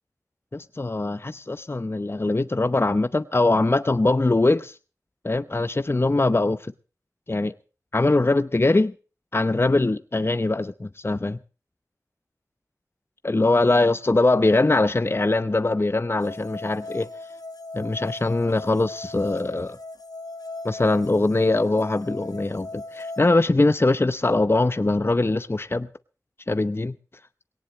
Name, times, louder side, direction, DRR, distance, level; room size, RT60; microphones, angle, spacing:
voice 1, 0.5-4.8 5.2-6.7 7.3-7.5 7.9-8.9 9.3-11.4 13.2-17.1 17.7-19.8 20.6-25.9 26.5-26.9, left 2 dB, 35° left, 0.7 m, -22 dB
sound 1, 16.2-23.2, left 2 dB, 70° left, 1.1 m, -38 dB
19.5 x 18.0 x 3.2 m
wide cardioid pair, 40°, 7 cm